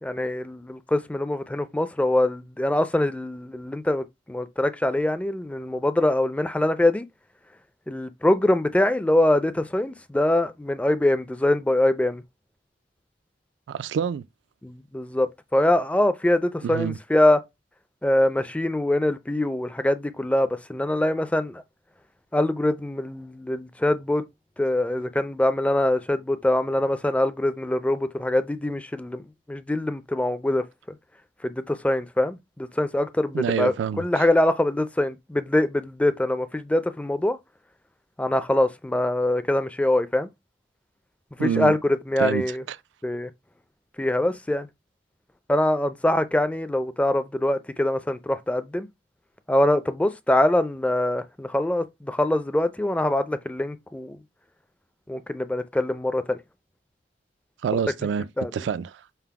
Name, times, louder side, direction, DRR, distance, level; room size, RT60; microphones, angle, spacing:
voice 1, 0.0-7.1 7.9-12.2 14.6-17.4 18.0-21.6 22.3-24.2 24.6-29.2 29.5-30.6 31.4-37.4 38.2-40.3 41.4-42.6 43.0-43.3 44.0-44.7 45.5-48.9 49.5-54.2 55.1-56.4 58.4-58.5, left 1 dB, 5° left, 0.4 m, -23 dB
voice 2, 13.7-14.2 16.6-17.0 33.3-34.2 41.4-41.7 42.2-42.8 57.6-58.3 58.5-59.0, right 7 dB, 75° right, 0.3 m, -27 dB
5.6 x 2.0 x 4.6 m
head